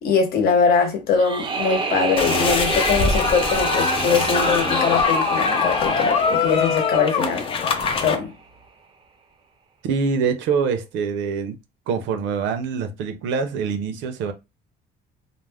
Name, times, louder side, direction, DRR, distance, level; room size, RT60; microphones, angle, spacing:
voice 1, 0.0-7.5 8.0-8.3, left 5 dB, 55° left, 0.9 m, -22 dB
sound 1, 1.2-8.1, right 5 dB, 25° right, 0.4 m, -28 dB
sound 2, 2.2-8.2, left 5 dB, 30° left, 0.4 m, -22 dB
voice 2, 9.8-11.6 11.9-14.3, right 5 dB, 85° right, 0.6 m, -24 dB
2.5 x 2.0 x 3.3 m
cardioid pair, 155°, 19 cm